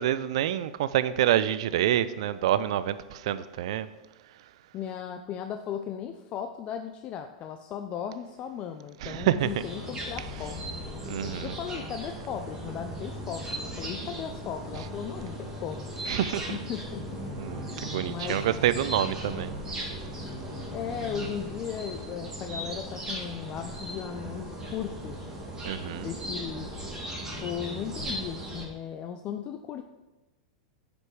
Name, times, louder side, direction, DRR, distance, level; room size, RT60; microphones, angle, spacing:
voice 1, 0.0-3.9 9.0-9.5 11.1-11.5 16.1-16.6 17.4-19.5 25.6-26.1, right 11 dB, 65° right, 0.5 m, -27 dB
voice 2, 4.7-10.6 11.0-15.9 16.5-17.2 18.1-18.4 20.7-25.2 25.9-26.7 27.4-29.8, left 8 dB, 35° left, 0.5 m, -36 dB
sound 1, 9.4-28.6, equal, 15° right, 2.9 m, -37 dB
9.6 x 5.2 x 4.8 m
hypercardioid pair, 100°, 3 cm